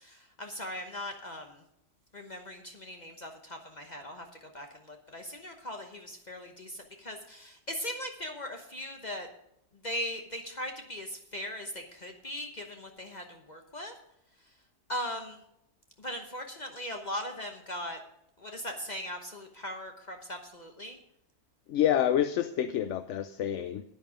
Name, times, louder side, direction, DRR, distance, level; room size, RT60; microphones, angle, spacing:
voice 1, 0.0-1.6 2.1-9.3 9.8-13.9 14.9-15.4 16.0-18.0 18.4-21.0, equal, 40° left, 4 dB, 1.1 m, -39 dB
voice 2, 21.7-23.8, left 10 dB, 80° left, 11 dB, 0.9 m, -28 dB
10.5 x 9.4 x 5.0 m, 0.79 s
omnidirectional pair, 1.2 m